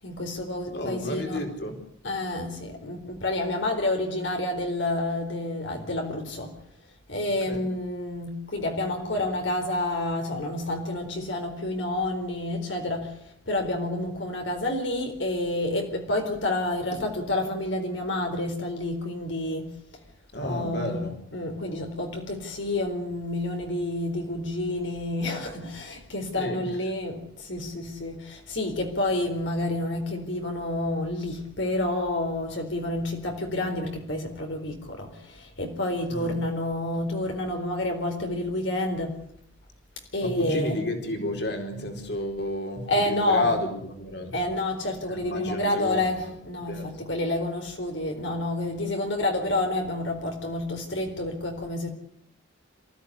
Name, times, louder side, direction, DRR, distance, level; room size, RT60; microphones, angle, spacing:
voice 1, 0.0-1.4 2.0-6.6 7.1-19.8 20.4-39.2 40.1-40.9 42.9-43.5 44.3-51.9, left 1 dB, 75° left, 3 dB, 4.2 m, -29 dB
voice 2, 0.7-1.8 7.5-7.6 20.3-21.1 26.3-26.7 36.1-36.4 40.2-44.3 45.1-46.1 46.7-46.9, left 1 dB, 55° left, 4 dB, 4.4 m, -31 dB
27.0 x 15.0 x 9.9 m, 0.71 s
head